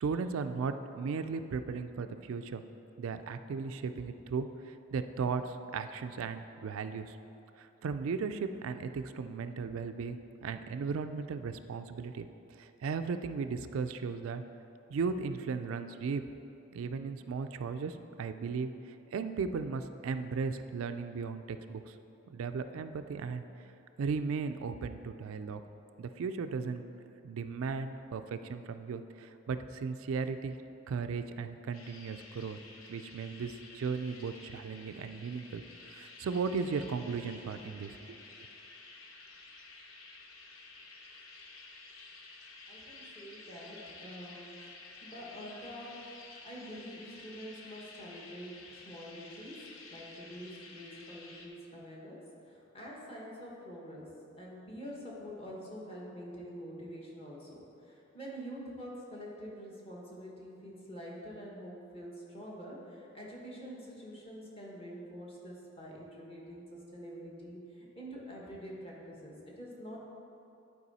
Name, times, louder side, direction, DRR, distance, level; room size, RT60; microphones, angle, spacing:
voice 1, 0.0-2.6 3.0-7.2 7.6-12.3 12.6-14.4 14.9-16.2 16.7-18.7 19.1-21.9 22.3-23.4 24.0-25.6 26.0-26.9 27.2-30.6 30.9-32.6 32.9-38.2, right 5 dB, 80° right, 9 dB, 0.3 m, -36 dB
sound 1, 31.7-51.5, left 3 dB, 80° left, 0.8 m, -52 dB
voice 2, 42.7-46.1 46.4-70.0, equal, 30° left, -4 dB, 1.3 m, -46 dB
11.0 x 4.7 x 4.1 m, 2.9 s
head